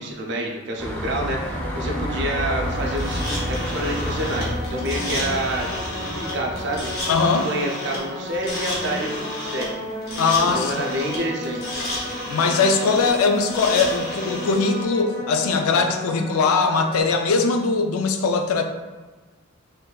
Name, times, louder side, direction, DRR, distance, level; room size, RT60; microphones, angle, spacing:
voice 1, 0.0-5.7 6.0-6.9 7.3-9.8 10.5-11.8, right 1 dB, 50° right, 0 dB, 0.4 m, -28 dB
sound 1, 0.8-7.3, equal, 5° left, 0.5 m, -30 dB
sound 2, 1.5-17.0, left 1 dB, 15° right, 1.0 m, -34 dB
sound 3, 2.9-14.8, left 1 dB, 45° left, 0.8 m, -32 dB
voice 2, 7.1-7.5 10.2-10.7 12.3-18.6, left 4 dB, 80° left, 5 dB, 0.3 m, -20 dB
3.8 x 2.6 x 2.2 m, 1.3 s
head